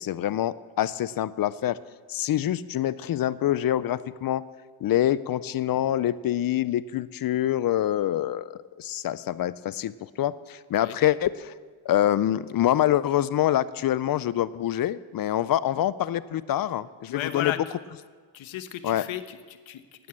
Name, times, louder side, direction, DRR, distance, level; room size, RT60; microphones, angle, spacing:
voice 1, 0.0-1.8 2.1-4.5 4.8-11.5 11.9-17.5 18.8-19.0, left 12 dB, 50° left, 17 dB, 0.4 m, -26 dB
voice 2, 17.1-17.6 18.3-20.1, left 11 dB, 70° left, 10 dB, 1.1 m, -34 dB
12.5 x 9.4 x 8.6 m, 1.5 s
cardioid pair, 140°, 48 cm